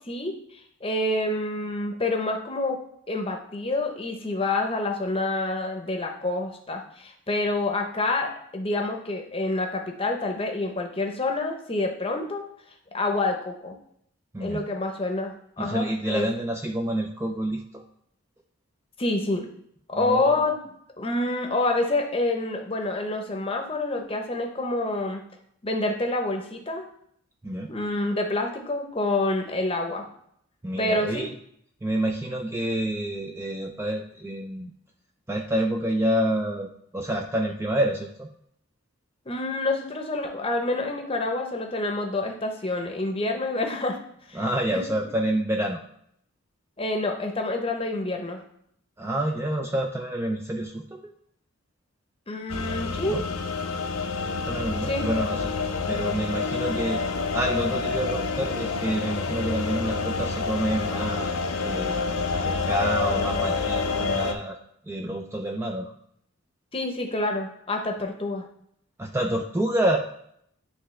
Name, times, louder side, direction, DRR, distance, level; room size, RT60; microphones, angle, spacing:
voice 1, 0.1-2.8 3.1-12.4 12.9-13.7 14.4-16.3 19.0-19.5 19.9-20.5 21.0-25.2 25.6-26.9 27.7-30.0 30.8-31.3 39.3-44.0 44.3-44.4 44.7-44.8 46.8-48.4 52.3-53.2 54.8-55.1 66.7-68.4, left 2 dB, 25° left, 3 dB, 0.7 m, -27 dB
voice 2, 15.6-17.8 19.9-20.4 27.4-27.7 30.6-31.3 31.8-34.7 35.3-38.3 44.3-45.8 49.0-51.1 53.1-53.2 54.3-55.5 55.9-57.0 57.3-61.3 61.6-61.9 62.4-64.6 64.9-65.9 69.0-70.0, right 1 dB, 10° right, 2 dB, 0.3 m, -28 dB
sound 1, 52.5-64.3, left 4 dB, 80° left, 0.6 m, -28 dB
9.7 x 3.3 x 3.2 m, 0.70 s
head